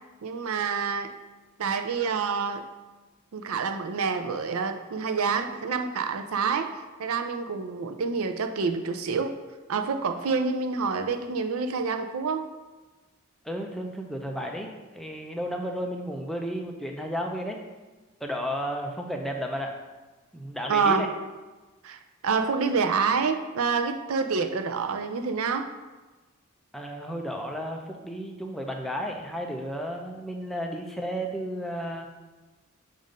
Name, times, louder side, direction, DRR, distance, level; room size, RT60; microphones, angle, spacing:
voice 1, 0.2-1.1 1.6-2.6 3.3-6.7 7.0-9.3 9.7-12.5 20.7-21.1 21.8-25.7, right 5 dB, 85° right, 7 dB, 0.5 m, -27 dB
voice 2, 13.4-17.6 18.2-19.7 20.3-21.1 26.7-32.1, equal, ahead, 1 dB, 0.5 m, -33 dB
7.2 x 2.6 x 5.1 m, 1.2 s
head